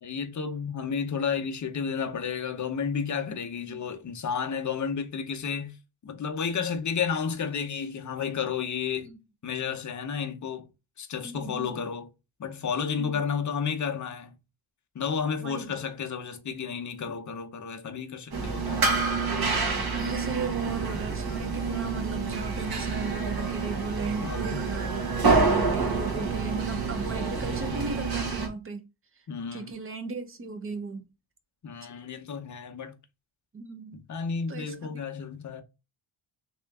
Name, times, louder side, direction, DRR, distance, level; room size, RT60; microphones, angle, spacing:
voice 1, 0.0-5.7 6.0-9.1 9.4-10.7 11.0-12.1 12.4-14.4 14.9-18.8 21.5-21.6 22.0-22.1 24.2-24.6 29.3-29.7 31.6-32.9 33.9-35.6, left 6 dB, 40° left, 0.6 m, -32 dB
voice 2, 11.2-11.9 13.0-13.2 15.4-15.8 19.9-25.1 25.4-28.8 29.5-31.1 33.5-34.0 34.5-34.8, right 3 dB, 30° right, 0.7 m, -37 dB
sound 1, 18.3-28.5, right 4 dB, 50° right, 1.2 m, -27 dB
3.3 x 2.9 x 3.4 m
wide cardioid pair, 160°, 47 cm